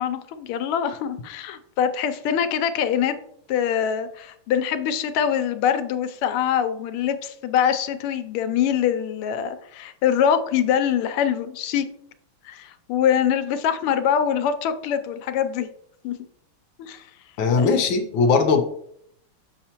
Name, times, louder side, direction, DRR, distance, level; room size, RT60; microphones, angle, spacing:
voice 1, 0.0-3.2 3.5-11.8 12.4-15.7 16.0-16.1 16.8-17.0 17.6-17.8, left 8 dB, 90° left, 10 dB, 1.5 m, -24 dB
voice 2, 17.4-18.6, left 4 dB, 70° left, 5 dB, 1.4 m, -19 dB
6.6 x 5.6 x 2.9 m, 0.69 s
omnidirectional pair, 2.4 m